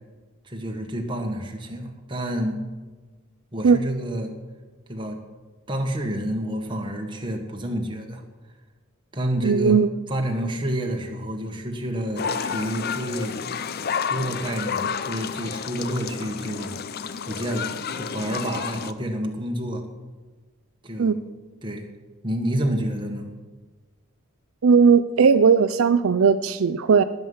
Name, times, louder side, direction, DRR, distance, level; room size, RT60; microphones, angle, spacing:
voice 1, 0.4-2.6 3.5-4.3 4.9-5.2 5.7-8.2 9.1-9.8 10.1-13.4 14.0-16.8 17.2-19.8 20.8-21.2 21.6-21.9 22.2-23.3, right 1 dB, 20° right, 2 dB, 1.6 m, -29 dB
voice 2, 9.4-9.9 21.0-21.1 24.6-27.0, right 5 dB, 70° right, 11 dB, 0.5 m, -17 dB
sound 1, 12.2-18.9, left 6 dB, 45° left, 0.5 m, -30 dB
19.5 x 8.1 x 5.6 m, 1.3 s
head